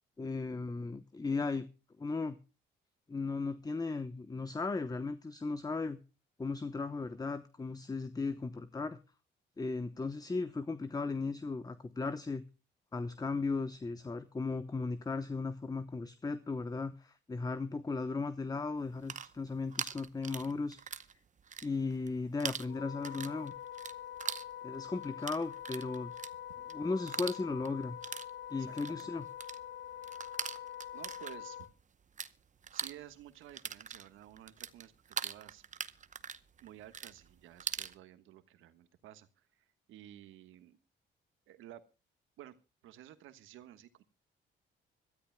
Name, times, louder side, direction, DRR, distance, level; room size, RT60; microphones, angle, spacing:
voice 1, 0.2-1.7 2.0-2.4 3.1-6.0 6.4-9.0 9.6-12.4 12.9-20.8 21.6-23.5 24.6-26.1 26.7-28.0 28.5-29.3, left 3 dB, 20° left, 13 dB, 0.9 m, -36 dB
sound 1, 18.9-21.1 21.4-22.1 22.4-32.3 32.6-37.9, right 7 dB, 40° right, 0.8 m, -42 dB
Wind instrument woodwind instrument, 22.7-31.7, left 10 dB, 70° left, 1.4 m, -45 dB
voice 2, 28.6-29.1 30.9-31.7 32.7-35.6 36.6-40.8 41.5-41.8 42.4-42.6 42.8-44.0, right 12 dB, 90° right, 11 dB, 1.3 m, -53 dB
25.5 x 13.0 x 2.2 m, 0.32 s
cardioid pair, 90°, 20 cm